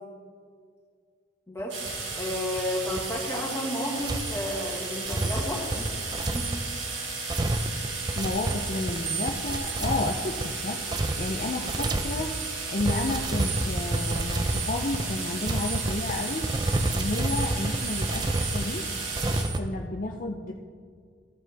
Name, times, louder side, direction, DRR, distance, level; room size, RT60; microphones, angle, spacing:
sound 1, 1.7-19.4, right 3 dB, 85° right, 1.8 m, -34 dB
sound 2, 1.9-2.6 2.9-3.2 4.0-19.6, right 2 dB, 20° right, 0.4 m, -30 dB
voice 1, 2.1-5.9 6.3-6.5 11.0-11.1 19.3-19.5, left 1 dB, 15° left, -2 dB, 1.5 m, -32 dB
voice 2, 8.2-10.8 11.2-12.3 12.7-16.5 16.9-18.9 19.4-20.5, left 2 dB, 45° left, 2 dB, 0.5 m, -31 dB
13.5 x 7.4 x 3.4 m, 2.1 s
head